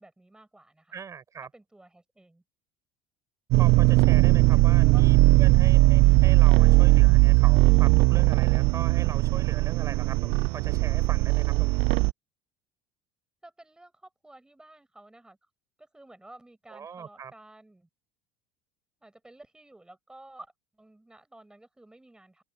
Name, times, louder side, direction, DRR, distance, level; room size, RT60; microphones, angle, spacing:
voice 1, 0.0-0.9 1.5-2.4 4.3-5.0 13.4-15.4 15.8-17.9 19.0-22.4, right 1 dB, 5° right, 6.8 m, -52 dB
voice 2, 0.9-1.5 3.6-12.0 16.7-17.3, right 7 dB, 25° right, 4.7 m, -41 dB
sound 1, 3.5-12.1, right 22 dB, 60° right, 0.5 m, -19 dB
open air
cardioid pair, 135°, 12 cm